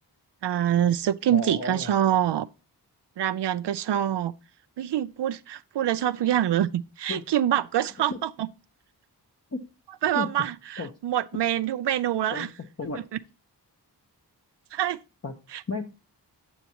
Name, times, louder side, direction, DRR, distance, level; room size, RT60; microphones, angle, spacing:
voice 1, 0.4-2.5 3.2-4.3 4.8-8.5 10.0-12.5 14.7-15.0 15.5-15.6, right 11 dB, 75° right, 0.5 m, -25 dB
voice 2, 1.3-2.0 7.1-7.2 8.1-8.2 9.5-9.6 10.1-10.3 10.8-10.9 12.3-12.5 12.8-13.0 15.2-15.3 15.7-15.9, left 3 dB, 35° left, 1.0 m, -32 dB
8.0 x 7.9 x 2.9 m
cardioid pair, 45°, 42 cm